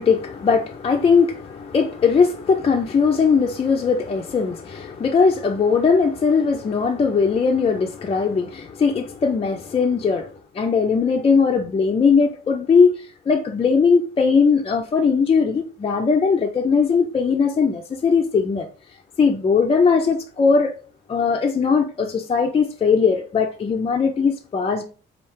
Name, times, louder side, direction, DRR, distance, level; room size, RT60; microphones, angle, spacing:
voice 1, 0.0-10.3 10.6-12.9 13.3-18.7 19.2-20.7 21.1-24.8, left 5 dB, 30° left, 0.4 m, -19 dB
4.4 x 2.4 x 3.1 m
cardioid pair, 90°, 20 cm